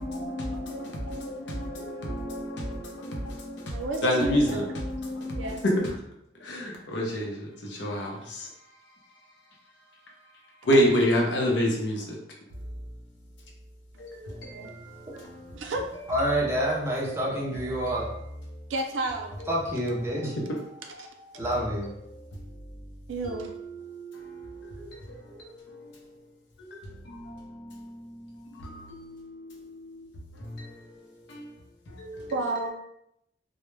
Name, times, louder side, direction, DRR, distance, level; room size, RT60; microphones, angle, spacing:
voice 1, 0.0-5.9 6.4-8.5 10.6-12.2 14.0-15.5 20.2-21.5 23.2-25.2 25.6-26.0 26.6-30.1 30.4-30.8 31.3-31.5 31.9-32.3, equal, 70° left, -1 dB, 0.6 m, -30 dB
voice 2, 3.7-4.7 5.4-5.6 14.3-14.7 15.5-15.9 18.7-19.4 21.0-21.1 23.1-23.5 32.3-32.7, right 2 dB, 85° right, 2 dB, 0.4 m, -31 dB
voice 3, 16.1-18.1 19.5-20.3 21.4-21.9, right 1 dB, 15° right, -4 dB, 0.5 m, -27 dB
2.2 x 2.0 x 3.0 m, 0.79 s
head